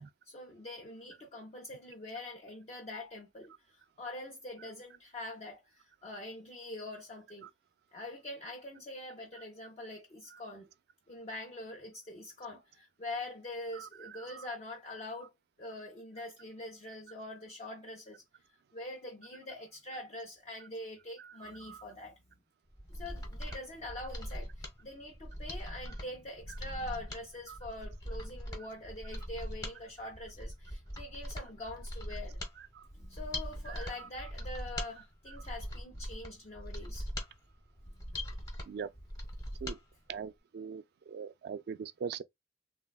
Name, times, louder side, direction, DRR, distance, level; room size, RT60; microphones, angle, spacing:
voice 1, 0.0-7.5 7.9-10.7 11.1-15.3 15.6-18.2 18.7-22.2 22.9-32.4 32.9-37.1 37.9-38.2, left 1 dB, 35° left, 0.5 m, -44 dB
voice 2, 21.4-21.8 27.5-27.6 34.0-34.1 38.7-38.9 39.6-39.8 40.1-40.8 41.1-42.2, right 6 dB, 60° right, 0.3 m, -41 dB
Mechanisms, 22.7-39.8 40.1-40.2, equal, 20° left, 1.0 m, -41 dB
3.2 x 2.2 x 2.3 m
head